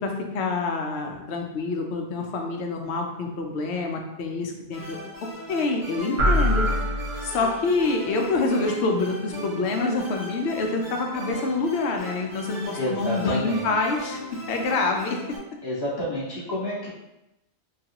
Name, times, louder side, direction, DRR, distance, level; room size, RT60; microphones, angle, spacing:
voice 1, 0.0-5.0 5.5-6.7 7.2-14.2 14.5-15.2, left 3 dB, 70° left, 2 dB, 0.8 m, -26 dB
sound 1, 4.7-15.4, right 1 dB, 40° right, 0.8 m, -38 dB
sound 2, 6.2-7.8, equal, 90° right, 1.0 m, -24 dB
voice 2, 12.7-13.7 15.6-16.9, left 1 dB, 20° left, -8 dB, 1.1 m, -29 dB
3.2 x 2.3 x 2.8 m, 0.91 s
omnidirectional pair, 1.2 m